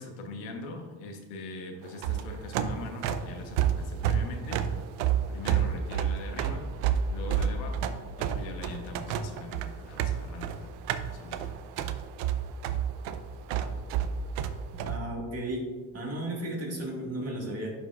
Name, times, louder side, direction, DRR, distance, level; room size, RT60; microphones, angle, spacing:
voice 1, 0.0-4.6 5.3-6.6 7.1-7.9 8.2-11.4, left 3 dB, 85° left, 3 dB, 1.3 m, -42 dB
sound 1, 1.9-15.0, right 9 dB, 80° right, 0.7 m, -30 dB
voice 2, 14.8-15.6 15.9-17.7, right 1 dB, 30° right, -1 dB, 2.0 m, -34 dB
11.0 x 4.9 x 2.5 m, 1.5 s
supercardioid pair, 105°, 46 cm